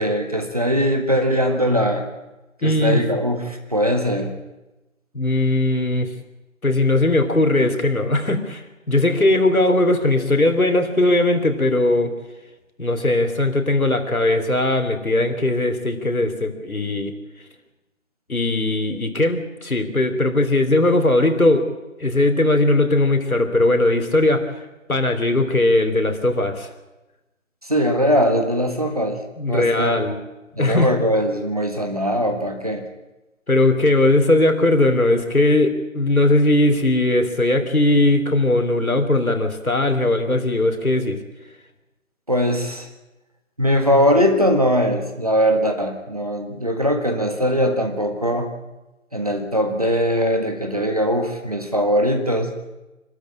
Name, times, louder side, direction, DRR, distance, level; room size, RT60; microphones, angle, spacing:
voice 1, 0.0-2.1 2.6-4.3 27.6-29.2 29.5-30.0 30.6-32.8 42.3-42.9 43.6-48.5 49.1-52.5, equal, 25° right, 4 dB, 1.7 m, -21 dB
voice 2, 2.6-3.0 5.1-6.1 6.6-12.1 12.8-17.1 18.3-21.7 22.0-24.5 24.9-26.7 29.4-30.2 30.6-30.9 33.5-41.2, left 2 dB, 90° left, 7 dB, 3.3 m, -19 dB
25.5 x 13.0 x 8.7 m, 1.0 s
figure-of-eight pair, 175°, 41 cm